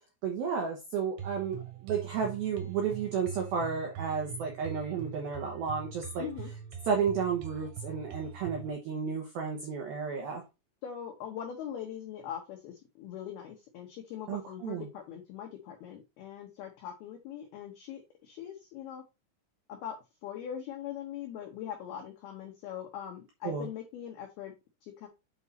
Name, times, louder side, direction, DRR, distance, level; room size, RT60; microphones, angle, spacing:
voice 1, 0.2-6.3 6.9-10.4 14.3-14.9 23.4-23.7, right 6 dB, 90° right, 2 dB, 2.1 m, -32 dB
sound 1, 1.2-8.7, right 9 dB, 65° right, 2.5 m, -43 dB
voice 2, 6.2-6.5 10.8-19.0 19.7-20.0 20.2-24.5 24.8-25.1, left 9 dB, 85° left, 3 dB, 2.2 m, -41 dB
8.2 x 4.2 x 4.0 m, 0.26 s
omnidirectional pair, 5.9 m